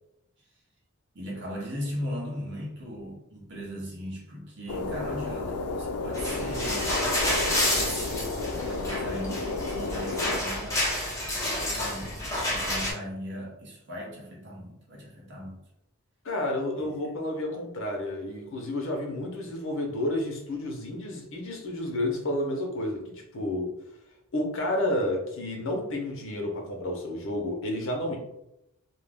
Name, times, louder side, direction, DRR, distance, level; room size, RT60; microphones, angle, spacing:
voice 1, 1.1-6.9 7.7-10.8 11.6-15.6 16.8-16.9, equal, 55° right, -3 dB, 0.8 m, -38 dB
sound 1, 4.7-10.4, left 3 dB, 90° left, 0.3 m, -32 dB
sound 2, 6.1-12.9, left 1 dB, 15° left, 0.7 m, -29 dB
voice 2, 16.2-23.0 23.3-23.7 24.3-28.2, left 1 dB, 65° left, 1 dB, 0.7 m, -30 dB
2.4 x 2.1 x 3.3 m, 0.84 s
head